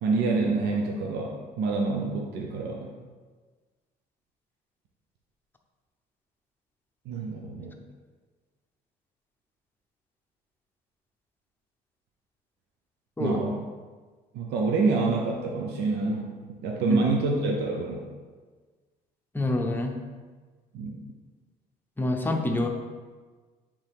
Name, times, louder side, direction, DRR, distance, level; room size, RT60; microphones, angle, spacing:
voice 1, 0.0-2.9 7.1-7.7 13.2-13.6 14.3-18.1 20.7-21.0, right 3 dB, 85° right, 0 dB, 0.7 m, -27 dB
voice 2, 19.3-19.9 22.0-22.7, left 2 dB, 10° left, 2 dB, 0.7 m, -26 dB
8.3 x 3.4 x 3.5 m, 1.4 s
cardioid pair, 110°, 17 cm